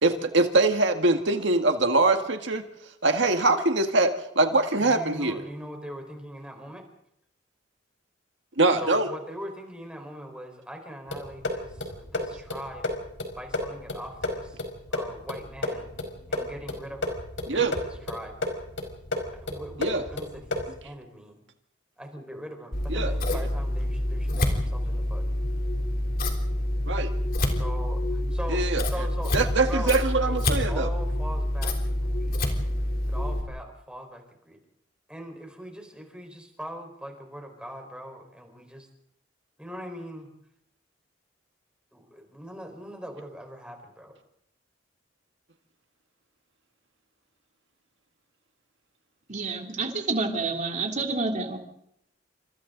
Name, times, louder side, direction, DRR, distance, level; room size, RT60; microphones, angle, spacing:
voice 1, 0.0-2.6 3.0-5.4 8.6-9.1 17.5-17.7 19.8-20.0 22.9-23.1 26.9-27.1 28.5-28.8 29.3-30.9, right 2 dB, 70° right, 5 dB, 1.9 m, -23 dB
voice 2, 4.8-6.8 8.7-13.0 13.3-15.9 16.3-17.2 17.4-18.3 19.3-21.4 22.0-25.2 27.5-29.3 29.6-30.0 30.3-32.5 33.1-34.6 35.1-38.9 39.6-40.3 41.9-44.2, equal, 5° right, 3 dB, 4.8 m, -41 dB
sound 1, 11.1-20.8, left 2 dB, 80° left, 4.8 m, -33 dB
Scissors, 22.7-33.4, left 1 dB, 50° left, 3.6 m, -27 dB
voice 3, 49.3-51.6, right 3 dB, 40° right, 2 dB, 3.3 m, -28 dB
29.0 x 26.5 x 4.0 m, 0.75 s
head